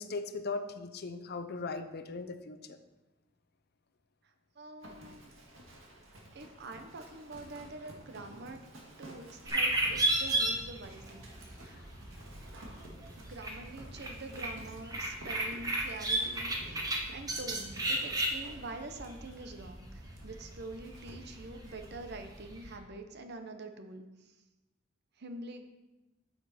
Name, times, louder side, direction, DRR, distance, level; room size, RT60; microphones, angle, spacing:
voice 1, 0.0-2.8, left 3 dB, 55° left, 9 dB, 0.6 m, -38 dB
voice 2, 4.6-5.3 6.3-8.6 9.0-11.3 11.6-11.8 13.2-16.8 17.1-24.3 25.2-25.7, right 2 dB, 55° right, 7 dB, 0.8 m, -45 dB
Livestock farm animals working animals, 4.8-22.4, right 1 dB, 85° right, 1.9 m, -53 dB
sound 1, 9.5-22.8, right 1 dB, 20° right, 1.1 m, -35 dB
9.1 x 7.0 x 4.2 m, 1.1 s
head